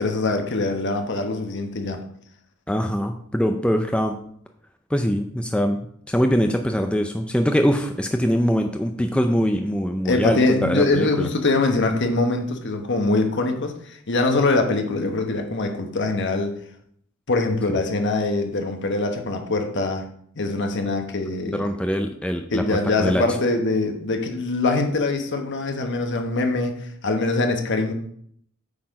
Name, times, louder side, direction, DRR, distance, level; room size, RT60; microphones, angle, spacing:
voice 1, 0.0-2.0 10.0-16.5 17.3-20.0 20.4-21.6 22.5-27.9, left 2 dB, 55° left, 5 dB, 1.1 m, -23 dB
voice 2, 2.7-4.2 4.9-5.8 6.1-11.3 21.5-23.2, equal, 5° left, 5 dB, 0.4 m, -23 dB
8.5 x 4.1 x 5.2 m, 0.65 s
head